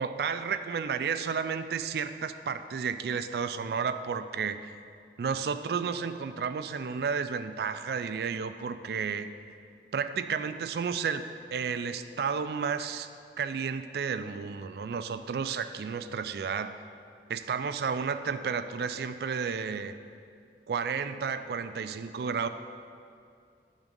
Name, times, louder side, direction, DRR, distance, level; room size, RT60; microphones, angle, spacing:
voice 1, 0.0-4.7 5.2-9.3 9.9-13.1 13.4-16.8 17.3-19.9 20.7-22.5, right 6 dB, 60° right, 10 dB, 0.3 m, -32 dB
10.5 x 3.6 x 5.2 m, 2.4 s
head